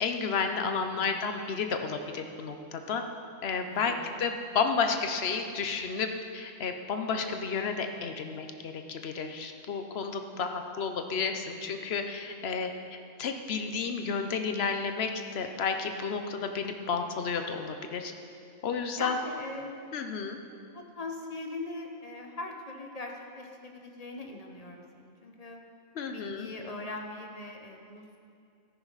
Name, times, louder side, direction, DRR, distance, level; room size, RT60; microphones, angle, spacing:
voice 1, 0.0-3.0 3.4-6.1 6.3-12.7 13.2-18.1 18.6-19.2 19.9-20.4 25.9-26.5, left 5 dB, 55° left, 6 dB, 1.0 m, -31 dB
voice 2, 0.7-1.2 3.7-4.1 19.0-20.0 20.7-25.6 26.1-28.2, left 2 dB, 30° left, 2 dB, 1.0 m, -41 dB
13.5 x 10.5 x 4.1 m, 2.4 s
omnidirectional pair, 1.4 m